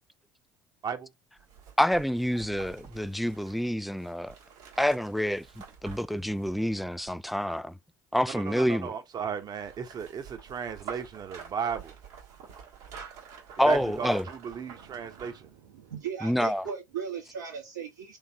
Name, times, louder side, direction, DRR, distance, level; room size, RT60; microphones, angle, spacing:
sound 1, 1.4-7.5 9.2-15.5 15.9-16.0, right 7 dB, 75° right, 1.7 m, -48 dB
voice 1, 1.8-4.4 4.8-7.8 8.1-8.9 13.6-14.2 16.2-16.7, equal, ahead, 0.3 m, -27 dB
voice 2, 8.3-12.0 13.6-15.5, right 7 dB, 45° right, 1.1 m, -35 dB
voice 3, 15.6-18.2, right 7 dB, 90° right, 1.8 m, -37 dB
3.7 x 3.6 x 3.0 m
hypercardioid pair, 60°, 10 cm